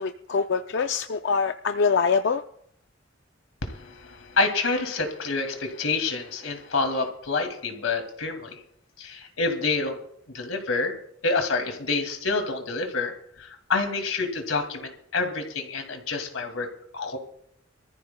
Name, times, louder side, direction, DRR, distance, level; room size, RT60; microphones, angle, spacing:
voice 1, 0.0-2.4, left 5 dB, 60° left, 8 dB, 0.4 m, -24 dB
voice 2, 3.6-8.6 9.0-10.0 10.3-11.0 11.2-17.2, left 3 dB, 90° left, 5 dB, 2.3 m, -28 dB
26.0 x 14.0 x 2.2 m, 0.69 s
head